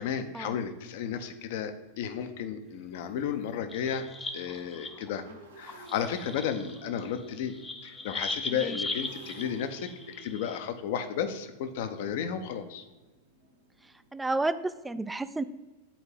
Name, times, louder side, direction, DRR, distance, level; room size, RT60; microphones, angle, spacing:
voice 1, 0.0-4.1 4.3-5.2 5.6-7.5 7.8-12.8, left 8 dB, 50° left, 9 dB, 0.6 m, -33 dB
Motorcycle, 1.5-1.6 2.0-2.2 2.5-14.1, right 4 dB, 70° right, 1.1 m, -53 dB
sound 1, 3.5-5.1 5.6-10.6, left 3 dB, 15° left, 0.7 m, -39 dB
voice 2, 14.1-15.4, right 2 dB, 10° right, 13 dB, 0.3 m, -31 dB
10.0 x 4.4 x 3.3 m, 1.2 s
figure-of-eight pair, 90°, 0 cm